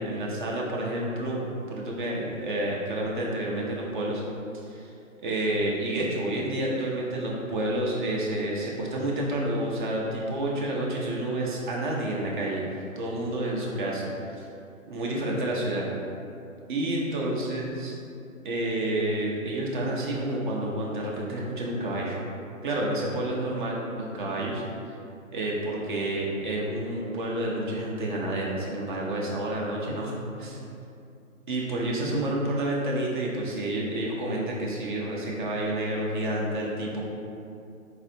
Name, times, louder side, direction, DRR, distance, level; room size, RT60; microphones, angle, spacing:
voice 1, 0.0-4.2 4.5-4.9 5.2-12.6 13.0-14.4 14.9-15.8 16.7-18.0 18.4-22.2 22.6-24.6 25.3-30.6 31.5-37.0, right 1 dB, 35° right, -3 dB, 0.6 m, -29 dB
4.2 x 2.4 x 2.7 m, 2.6 s
hypercardioid pair, 135°, 41 cm